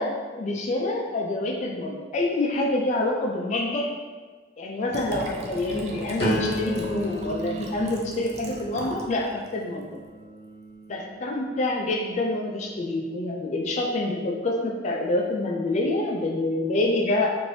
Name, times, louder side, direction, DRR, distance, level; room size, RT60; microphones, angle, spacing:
voice 1, 0.0-3.9 4.6-10.0 10.9-17.3, left 2 dB, 40° left, -1 dB, 0.3 m, -27 dB
Liquid, 4.9-9.1 9.5-9.6, right 2 dB, 40° right, 0.3 m, -37 dB
sound 1, 6.2-12.0 12.6-13.0, equal, 60° left, 0.7 m, -33 dB
3.2 x 2.6 x 2.6 m, 1.4 s
head